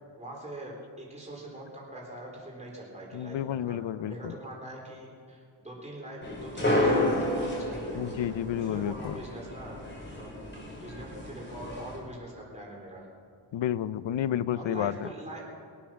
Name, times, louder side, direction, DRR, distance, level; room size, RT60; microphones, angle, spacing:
voice 1, 0.2-8.0 8.6-9.8 10.2-10.3 10.8-13.1 14.5-15.5, right 1 dB, 15° right, -3 dB, 3.9 m, -43 dB
voice 2, 3.1-4.3 7.9-9.2 13.5-15.1, left 10 dB, 75° left, 16 dB, 0.6 m, -31 dB
sound 1, 6.2-12.0, left 1 dB, 25° left, 4.6 m, -31 dB
22.0 x 9.0 x 6.3 m, 2.3 s
wide cardioid pair, 130°, 45 cm